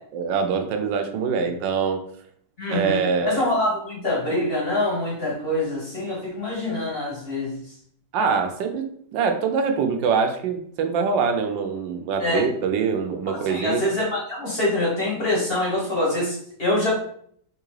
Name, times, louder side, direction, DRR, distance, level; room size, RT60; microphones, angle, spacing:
voice 1, 0.1-2.0 2.7-3.5 8.1-13.8, right 5 dB, 85° right, 5 dB, 1.3 m, -24 dB
voice 2, 2.6-7.6 12.2-12.5 13.3-16.9, left 1 dB, 35° left, -5 dB, 1.1 m, -25 dB
3.6 x 3.0 x 3.1 m, 0.63 s
omnidirectional pair, 2.0 m